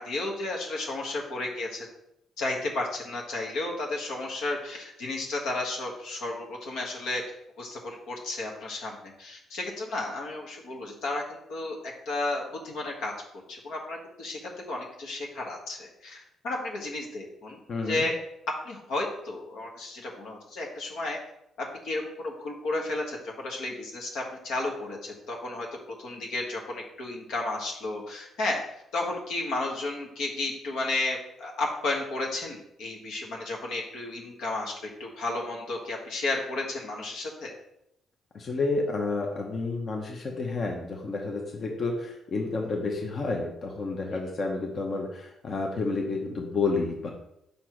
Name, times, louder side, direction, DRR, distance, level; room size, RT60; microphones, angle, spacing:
voice 1, 0.0-1.9 2.4-7.2 7.6-11.2 11.5-11.8 12.0-13.1 13.5-17.6 17.9-18.1 18.6-21.2 21.6-25.7 26.0-28.6 28.9-37.5 44.1-44.2, left 2 dB, 85° left, -1 dB, 1.4 m, -33 dB
voice 2, 38.3-47.1, left 3 dB, 50° left, 1 dB, 0.9 m, -30 dB
5.2 x 4.5 x 4.6 m, 0.81 s
cardioid pair, 90°, 0 cm